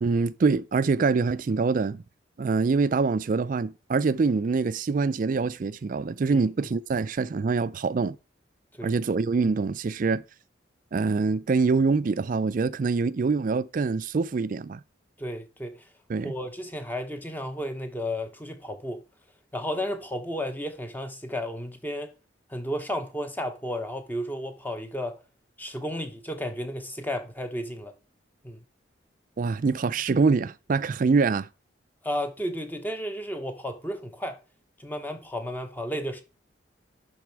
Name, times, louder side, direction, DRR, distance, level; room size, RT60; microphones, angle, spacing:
voice 1, 0.0-2.0 2.4-8.2 8.8-10.2 10.9-14.8 16.1-16.3 29.4-31.5, right 4 dB, 45° right, 0.4 m, -25 dB
voice 2, 15.2-15.9 16.2-19.0 19.5-22.1 22.5-25.2 25.6-27.9 28.4-28.6 32.0-34.4 34.8-36.2, equal, 10° left, 1.0 m, -33 dB
11.0 x 4.2 x 4.6 m
head